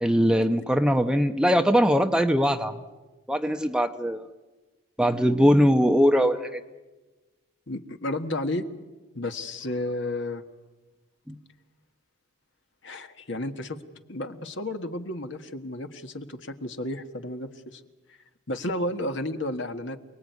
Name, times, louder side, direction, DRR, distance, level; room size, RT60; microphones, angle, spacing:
voice 1, 0.0-2.7 3.3-4.3 5.0-6.6 11.3-11.4, equal, 5° right, 6 dB, 0.8 m, -21 dB
voice 2, 7.7-8.6 9.2-10.4 12.8-13.8 14.1-17.8 18.5-20.0, left 1 dB, 65° left, 7 dB, 1.6 m, -32 dB
28.5 x 19.5 x 9.5 m, 1.2 s
head